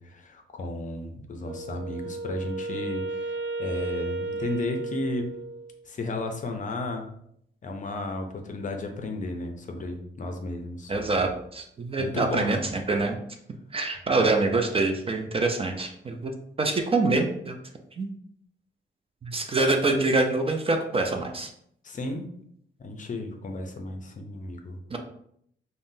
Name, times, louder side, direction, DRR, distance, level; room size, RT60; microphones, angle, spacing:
voice 1, 0.0-5.3 5.9-7.1 7.6-10.9 12.0-12.8 21.8-22.3 22.8-24.8, left 2 dB, 40° left, 4 dB, 0.5 m, -34 dB
Wind instrument woodwind instrument, 1.4-5.8, right 3 dB, 70° right, 0.6 m, -34 dB
voice 2, 10.9-13.2 13.7-17.6 18.0-18.1 19.2-21.5 24.9-25.0, right 3 dB, 30° right, 4 dB, 0.4 m, -25 dB
3.5 x 2.1 x 2.6 m, 0.70 s
cardioid pair, 100°, 20 cm